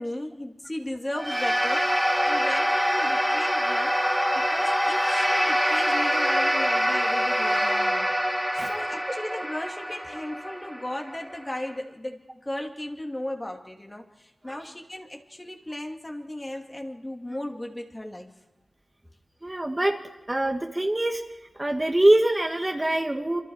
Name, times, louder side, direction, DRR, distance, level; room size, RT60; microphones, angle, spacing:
voice 1, 0.0-4.0 4.4-8.1 8.5-18.3, left 1 dB, 20° left, 2 dB, 2.6 m, -36 dB
sound 1, 1.2-11.7, equal, ahead, 2.8 m, -25 dB
voice 2, 19.4-20.0 20.3-21.2 21.5-23.4, right 1 dB, 20° right, 2 dB, 2.0 m, -24 dB
27.5 x 26.0 x 4.9 m, 1.1 s
wide cardioid pair, 85°, 0 cm